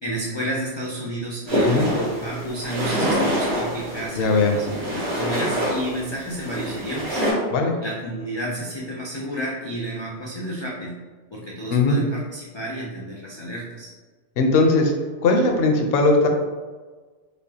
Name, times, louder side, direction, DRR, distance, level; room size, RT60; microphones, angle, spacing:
voice 1, 0.0-7.2 7.8-11.0 11.3-13.9, right 1 dB, 45° left, -4 dB, 0.3 m, -31 dB
sound 1, 1.5-7.3, equal, 65° right, 1.5 m, -25 dB
voice 2, 4.2-4.5 7.5-7.8 11.7-12.0 14.4-14.9 15.2-16.3, left 3 dB, 65° left, 3 dB, 0.7 m, -18 dB
5.0 x 2.2 x 2.7 m, 1.4 s
omnidirectional pair, 1.2 m